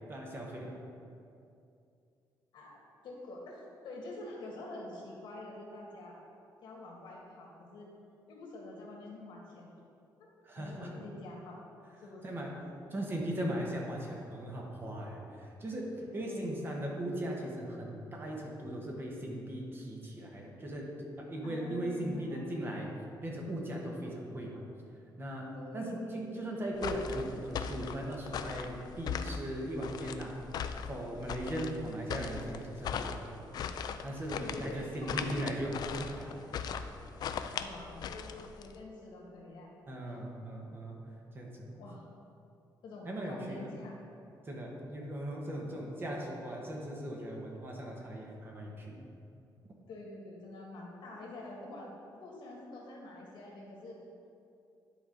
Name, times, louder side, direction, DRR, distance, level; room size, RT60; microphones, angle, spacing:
voice 1, 0.1-0.8 10.4-10.9 12.2-12.5 12.9-22.9 23.2-24.7 25.2-30.4 30.9-33.2 34.0-36.7 39.9-41.0 41.3-41.8 43.0-43.7 44.4-49.1, right 1 dB, 30° right, -1 dB, 1.1 m, -38 dB
voice 2, 3.0-6.2 6.6-7.9 8.3-9.7 10.2-10.3 10.6-11.6 12.0-12.2 16.1-16.7 21.4-22.4 25.5-26.2 34.4-35.2 37.5-39.7 40.0-40.3 41.8-42.1 42.8-44.0 49.9-54.1, left 2 dB, 75° left, -2 dB, 1.7 m, -47 dB
sound 1, 26.8-38.7, left 7 dB, 60° left, 0.4 m, -39 dB
10.5 x 5.0 x 3.9 m, 2.6 s
cardioid pair, 150°, 8 cm